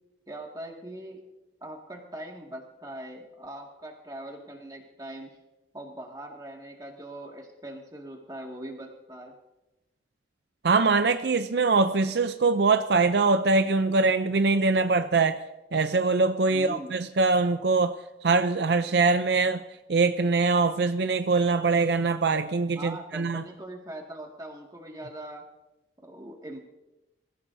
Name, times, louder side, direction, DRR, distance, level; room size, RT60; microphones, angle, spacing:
voice 1, 0.3-1.2 1.6-5.4 5.7-9.3 16.5-16.9 22.8-25.4 26.0-26.7, right 1 dB, 20° right, 0 dB, 2.1 m, -41 dB
voice 2, 10.6-15.4 15.7-18.0 18.2-19.6 19.9-23.4, right 3 dB, 65° right, 9 dB, 0.5 m, -23 dB
26.5 x 15.5 x 2.7 m, 1.0 s
head